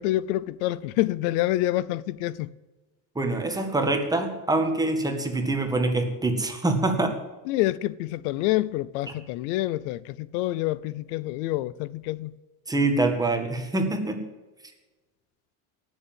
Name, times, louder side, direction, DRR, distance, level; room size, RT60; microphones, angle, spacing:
voice 1, 0.0-2.5 7.5-12.3, left 16 dB, 90° left, 0.8 m, -27 dB
voice 2, 3.2-7.1 12.7-14.2, right 2 dB, 10° right, 1.9 m, -25 dB
18.0 x 7.5 x 7.6 m
cardioid pair, 160°, 44 cm